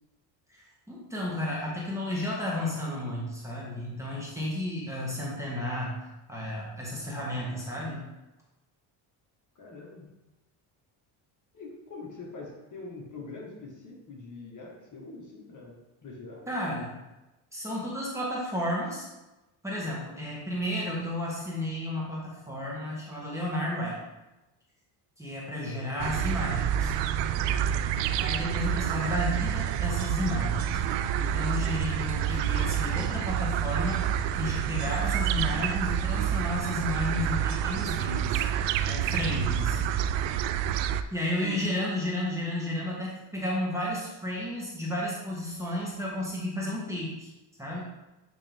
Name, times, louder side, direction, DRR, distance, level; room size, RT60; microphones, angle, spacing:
voice 1, 0.5-6.0 6.3-8.1 16.5-16.9 17.5-19.1 19.6-24.0 25.2-26.9 28.2-30.8 31.1-34.0 34.3-38.4 38.8-39.9 41.1-47.3 47.6-47.8, left 1 dB, 5° right, -5 dB, 1.7 m, -32 dB
voice 2, 9.6-10.1 11.5-16.8 25.5-25.8 41.4-41.6, left 3 dB, 40° left, -3 dB, 1.7 m, -44 dB
sound 1, 26.0-41.0, right 9 dB, 65° right, 0.5 m, -28 dB
sound 2, 29.7-39.7, right 5 dB, 40° right, 0.9 m, -48 dB
8.6 x 3.4 x 3.6 m, 1.0 s
cardioid pair, 100°, 47 cm